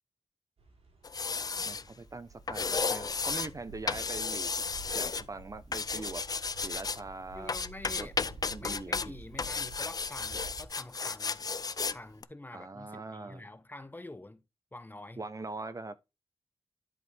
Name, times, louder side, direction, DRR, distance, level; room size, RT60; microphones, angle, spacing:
sound 1, 0.6-10.7, right 2 dB, 90° right, 3.3 m, -51 dB
sound 2, 1.0-1.8 2.5-3.5 3.9-5.2 5.7-7.0 7.5-9.1 9.4-12.0 12.2-12.3, left 5 dB, 40° left, 0.4 m, -33 dB
voice 1, 1.6-4.5 4.9-6.2 6.6-7.5 8.0-8.1 8.5-9.1 12.5-13.4 15.2-16.1, right 3 dB, 35° right, 0.6 m, -42 dB
voice 2, 7.3-8.1 8.6-11.5 11.9-14.4 14.7-15.2, left 2 dB, 20° left, 0.8 m, -46 dB
11.0 x 4.5 x 3.4 m
wide cardioid pair, 100°, 10 cm